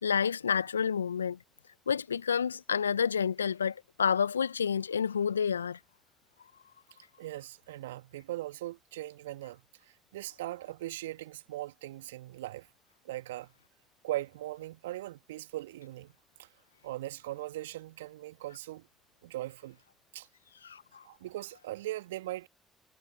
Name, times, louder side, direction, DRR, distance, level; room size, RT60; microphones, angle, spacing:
voice 1, 0.0-1.4 1.9-5.8 20.6-20.8, left 7 dB, 85° left, 1.7 m, -29 dB
voice 2, 7.2-12.7 13.0-13.5 14.0-16.1 16.4-16.5 16.8-18.9 19.2-19.8 20.1-20.3 21.0-22.5, right 15 dB, 75° right, 2.2 m, -40 dB
figure-of-eight pair, 45°, 0 cm